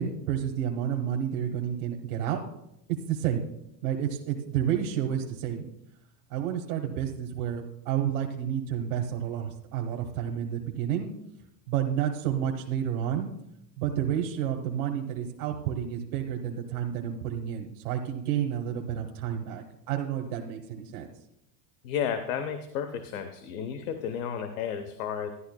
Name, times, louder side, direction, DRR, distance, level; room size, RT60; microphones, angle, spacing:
voice 1, 0.0-2.4 2.9-3.5 3.8-5.7 6.3-11.1 11.7-13.3 13.8-21.1, right 9 dB, 90° right, 0 dB, 1.2 m, -30 dB
voice 2, 21.8-25.3, left 8 dB, 70° left, 8 dB, 0.9 m, -32 dB
12.5 x 11.0 x 2.2 m, 0.83 s
supercardioid pair, 175°, 44 cm